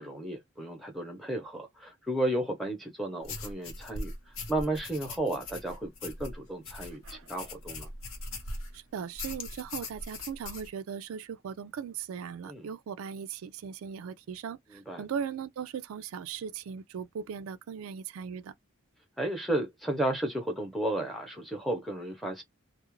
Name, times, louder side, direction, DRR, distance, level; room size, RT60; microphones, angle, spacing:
voice 1, 0.0-4.1 4.5-7.9 12.4-12.7 14.7-15.0 19.2-22.4, right 1 dB, ahead, 0.6 m, -33 dB
sound 1, 3.2-8.8 9.2-10.7, left 2 dB, 75° left, 0.8 m, -40 dB
voice 2, 7.0-7.3 8.7-18.5, right 7 dB, 80° right, 0.3 m, -38 dB
2.3 x 2.0 x 3.0 m
head